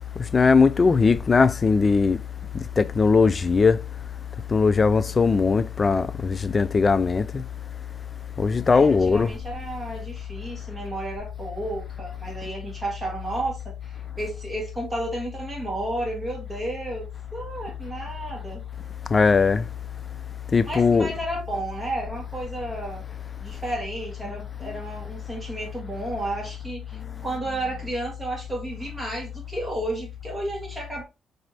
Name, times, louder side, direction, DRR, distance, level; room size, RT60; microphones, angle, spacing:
voice 1, 0.3-2.2 2.8-3.8 4.5-7.4 8.4-9.3 19.1-19.6 20.5-21.1, left 4 dB, 35° left, 0.3 m, -19 dB
voice 2, 8.7-18.6 20.7-23.0 23.4-31.0, right 1 dB, 15° right, 1.7 m, -32 dB
4.1 x 2.6 x 3.2 m
cardioid pair, 90°, 0 cm